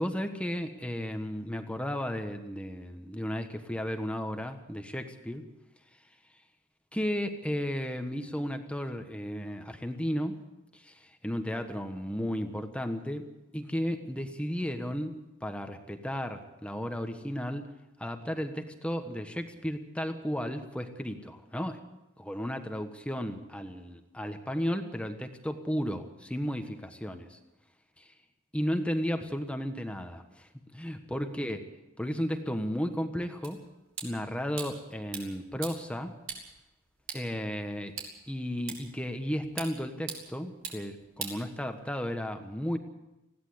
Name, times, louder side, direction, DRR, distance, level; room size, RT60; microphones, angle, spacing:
voice 1, 0.0-5.4 6.9-10.4 10.7-13.3 13.5-17.7 18.0-21.8 22.2-27.4 28.0-28.1 28.5-31.6 32.0-33.6 34.0-36.1 37.1-37.9 38.3-42.8, equal, 5° left, 6 dB, 1.3 m, -34 dB
sound 1, 33.4-42.0, right 6 dB, 70° right, 4.4 m, -44 dB
20.5 x 16.0 x 7.9 m, 0.96 s
head